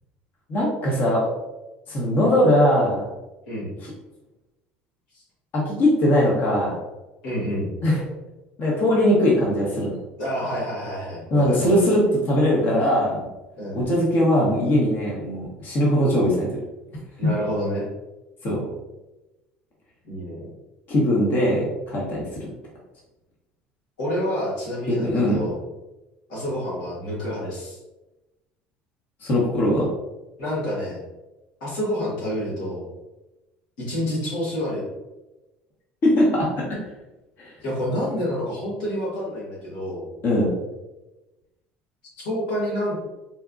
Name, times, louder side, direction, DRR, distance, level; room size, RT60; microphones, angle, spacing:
voice 1, 0.5-1.3 1.9-3.1 3.8-3.9 5.5-6.8 7.8-8.0 8.6-10.0 11.3-12.0 12.3-13.2 13.7-16.5 17.2-17.3 18.4-18.6 20.9-22.5 24.9-25.4 29.2-29.9 36.0-36.6 37.4-37.5 40.2-40.5, left 1 dB, 50° left, -4 dB, 1.1 m, -20 dB
voice 2, 7.2-7.7 10.2-11.9 13.6-13.8 17.2-17.9 20.0-20.5 24.0-25.6 26.3-27.8 30.4-31.0 31.6-32.9 33.8-34.8 37.6-40.1 42.2-43.0, equal, 90° left, -6 dB, 1.4 m, -28 dB
4.2 x 2.2 x 2.5 m, 1.0 s
supercardioid pair, 90°, 4 cm